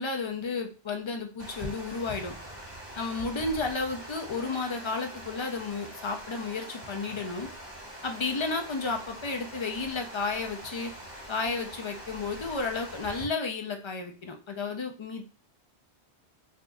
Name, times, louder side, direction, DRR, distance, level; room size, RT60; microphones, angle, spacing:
voice 1, 0.0-2.3 3.0-7.5 8.0-10.9 11.3-15.2, left 4 dB, 40° left, 4 dB, 0.4 m, -32 dB
Water, 1.4-13.2, right 1 dB, 25° right, 0.9 m, -43 dB
4.9 x 2.6 x 2.3 m, 0.35 s
omnidirectional pair, 1.1 m